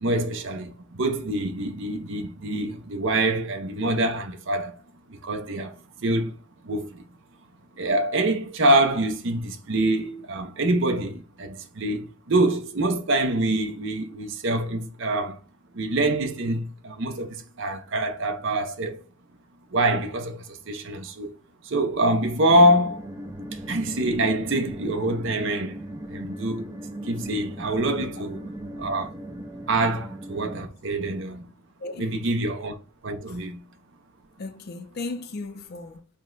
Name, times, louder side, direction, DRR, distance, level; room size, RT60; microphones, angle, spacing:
voice 1, 0.0-4.7 5.1-6.3 6.6-7.0 7.8-15.4 15.7-19.0 19.7-21.4 21.6-23.0 23.5-25.8 26.1-26.7 27.0-28.4 28.8-29.1 29.7-31.5 32.0-32.7 33.0-33.6, right 1 dB, 60° right, 0.6 m, -25 dB
sound 1, 22.5-30.6, right 1 dB, 15° right, 0.4 m, -38 dB
voice 2, 31.8-32.1 33.3-33.4 34.4-36.1, left 3 dB, 45° left, 0.5 m, -36 dB
5.3 x 2.2 x 3.7 m
head